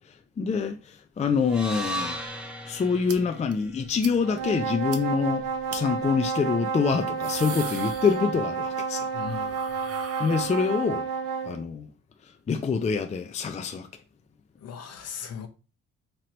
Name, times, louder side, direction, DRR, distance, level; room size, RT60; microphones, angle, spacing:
voice 1, 0.4-2.2 2.7-5.4 5.7-9.1 10.2-11.0 11.5-11.9 12.5-13.9, left 5 dB, 25° left, 0.4 m, -26 dB
sound 1, 1.4-5.6, equal, 5° right, 1.0 m, -37 dB
sound 2, 3.1-3.2 3.5-3.6 4.0-4.2 4.5-4.6 4.9-5.0 5.7-5.8 6.9-8.6 8.9-11.1, right 7 dB, 55° right, 0.7 m, -41 dB
sound 3, 4.2-11.6, right 5 dB, 85° right, 1.0 m, -30 dB
voice 2, 9.1-9.6 14.6-15.5, left 7 dB, 55° left, 0.8 m, -37 dB
3.0 x 3.0 x 3.8 m
cardioid pair, 90°, 30 cm